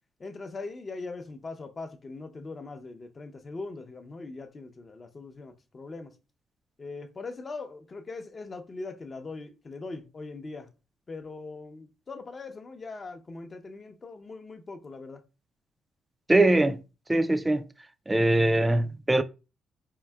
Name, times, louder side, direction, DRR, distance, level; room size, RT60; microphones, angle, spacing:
voice 1, 0.2-6.1 6.8-10.7 11.1-15.2, left 3 dB, 35° left, 0.6 m, -41 dB
voice 2, 16.3-16.8 17.1-17.6 18.1-19.2, right 2 dB, 15° right, 0.3 m, -22 dB
4.6 x 2.6 x 2.2 m
cardioid pair, 90°, 0 cm